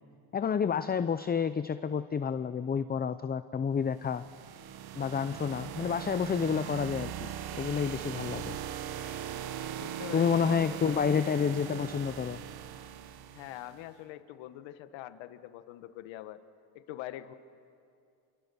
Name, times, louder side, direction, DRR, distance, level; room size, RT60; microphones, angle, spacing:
voice 1, 0.3-4.2 5.0-7.3 7.6-8.6 10.1-12.4, left 6 dB, 20° left, 12 dB, 0.6 m, -29 dB
sound 1, 4.0-13.8, right 10 dB, 50° right, 1.3 m, -40 dB
voice 2, 9.8-11.0 13.3-16.4 16.7-17.3, left 13 dB, 75° left, 11 dB, 1.4 m, -44 dB
29.5 x 28.0 x 7.0 m, 2.4 s
supercardioid pair, 100°, 46 cm